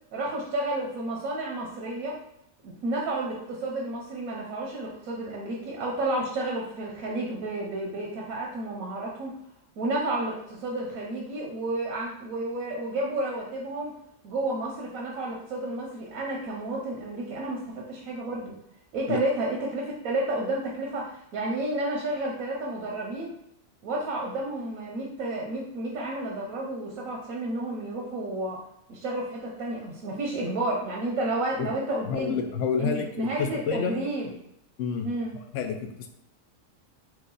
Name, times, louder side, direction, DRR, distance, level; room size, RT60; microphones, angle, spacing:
voice 1, 0.1-2.2 2.6-9.4 9.8-13.9 14.2-18.5 18.9-23.3 23.8-28.6 28.9-32.4 32.8-34.3 35.0-35.3, right 2 dB, 85° right, -2 dB, 1.2 m, -31 dB
voice 2, 32.0-34.0 34.8-35.1 35.5-36.1, left 6 dB, 70° left, 5 dB, 0.9 m, -29 dB
4.6 x 2.4 x 3.9 m, 0.81 s
omnidirectional pair, 1.4 m